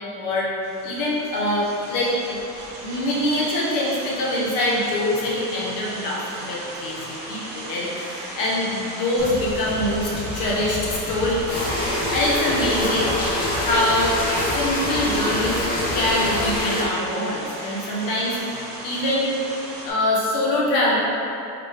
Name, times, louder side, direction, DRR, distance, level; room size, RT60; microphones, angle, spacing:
voice 1, 0.2-0.5 0.8-2.4 2.8-11.5 12.1-13.1 13.6-14.2 14.5-15.6 15.9-19.3 19.8-21.0, left 1 dB, 60° left, -5 dB, 0.9 m, -24 dB
sound 1, 0.6-19.9, right 1 dB, 35° right, 0.8 m, -36 dB
sound 2, 9.2-16.7, equal, 40° left, 1.3 m, -34 dB
sound 3, 11.5-16.8, left 1 dB, 25° left, 0.8 m, -25 dB
3.9 x 3.6 x 3.3 m, 2.9 s
cardioid pair, 170°, 37 cm